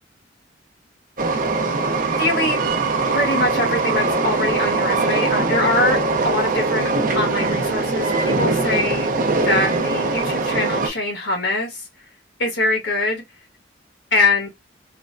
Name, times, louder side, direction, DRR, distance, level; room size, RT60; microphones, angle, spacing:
Train, 1.2-10.9, right 3 dB, 50° right, 0.6 m, -21 dB
voice 1, 2.2-2.6 3.1-6.0 6.2-9.1 9.4-11.8 12.4-13.2 14.1-14.5, left 2 dB, 75° left, 1.4 m, -23 dB
3.3 x 2.1 x 2.5 m
head